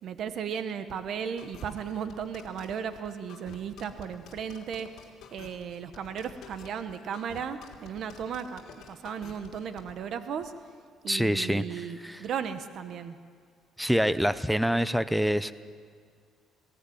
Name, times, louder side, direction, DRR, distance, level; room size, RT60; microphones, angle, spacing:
voice 1, 0.0-5.0 5.3-10.5 11.0-13.2, right 7 dB, 50° right, 10 dB, 1.0 m, -35 dB
sound 1, 1.4-9.9, left 8 dB, 65° left, 3.3 m, -49 dB
voice 2, 11.1-12.2 13.8-15.5, equal, ahead, 14 dB, 0.6 m, -26 dB
21.5 x 17.0 x 9.4 m, 2.1 s
cardioid pair, 150°, 0 cm